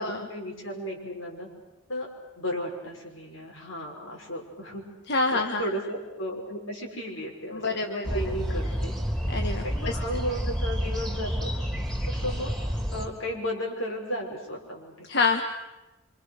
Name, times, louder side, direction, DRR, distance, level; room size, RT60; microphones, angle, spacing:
voice 1, 0.0-1.5 1.9-2.1 2.4-4.8 5.3-8.9 9.6-11.5 12.1-12.5 12.9-15.1, equal, 80° left, 0 dB, 6.2 m, -34 dB
voice 2, 5.1-5.6 7.5-8.2 9.3-10.0 15.1-15.4, left 3 dB, 55° left, 5 dB, 1.4 m, -27 dB
sound 1, 8.0-13.1, equal, ahead, 3.5 m, -29 dB
27.0 x 26.5 x 6.6 m, 1.1 s
head